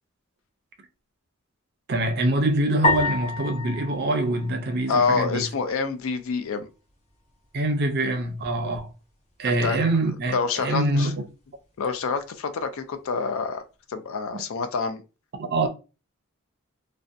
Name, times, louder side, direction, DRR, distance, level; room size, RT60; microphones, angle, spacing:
voice 1, 1.9-5.4 7.5-8.9 9.4-11.2 14.3-14.4 15.5-15.7, right 1 dB, 50° right, 0.5 m, -24 dB
sound 1, 2.8-5.3, left 2 dB, 30° left, 0.7 m, -28 dB
voice 2, 4.9-6.7 9.4-9.8 10.3-11.1 11.8-13.6 13.9-15.0, left 5 dB, 65° left, 0.4 m, -27 dB
2.6 x 2.1 x 2.4 m
head